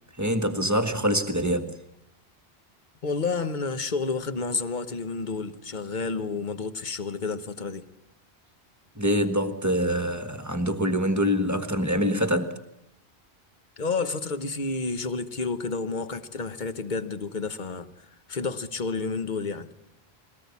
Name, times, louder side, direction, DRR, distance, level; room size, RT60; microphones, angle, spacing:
voice 1, 0.2-1.7 9.0-12.5, equal, 15° right, 1.5 m, -25 dB
voice 2, 3.0-7.9 13.8-19.7, left 4 dB, 50° left, 1.2 m, -30 dB
22.0 x 18.5 x 8.4 m
omnidirectional pair, 1.1 m